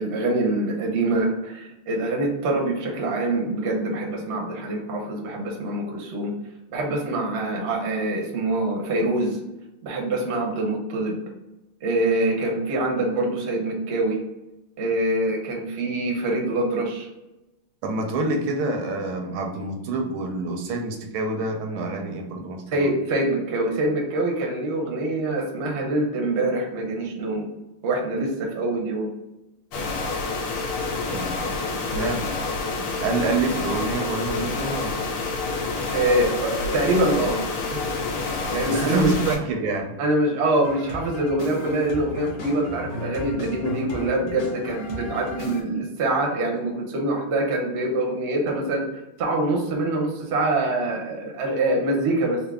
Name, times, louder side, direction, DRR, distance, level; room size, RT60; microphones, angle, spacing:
voice 1, 0.0-6.3 6.7-9.4 9.8-11.2 11.8-14.2 14.8-17.1 22.7-27.5 27.8-29.1 35.9-37.4 37.7-37.8 38.5-39.1 40.0-48.8 49.2-52.4, right 2 dB, 55° right, 0 dB, 0.7 m, -24 dB
voice 2, 17.8-22.8 31.1-32.3 32.7-35.1 38.6-40.0, right 3 dB, 80° right, 3 dB, 1.5 m, -27 dB
sound 1, 29.7-39.4, left 3 dB, 85° left, 1.6 m, -28 dB
sound 2, 40.5-45.6, left 2 dB, 60° left, 1.3 m, -36 dB
4.5 x 2.1 x 3.4 m, 0.96 s
omnidirectional pair, 2.3 m